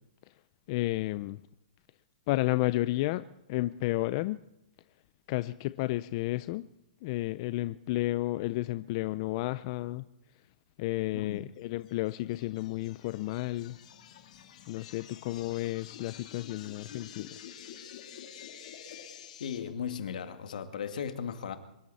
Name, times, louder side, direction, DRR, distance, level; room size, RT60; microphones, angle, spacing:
voice 1, 0.7-1.4 2.3-4.4 5.3-6.7 7.0-10.0 10.8-13.8 14.7-17.4, left 18 dB, 40° left, 0.5 m, -32 dB
voice 2, 11.1-11.5 19.4-21.6, left 7 dB, 75° left, 2.1 m, -36 dB
sound 1, 11.8-19.6, left 9 dB, 60° left, 3.2 m, -49 dB
24.5 x 12.5 x 4.2 m
hypercardioid pair, 155°, 4 cm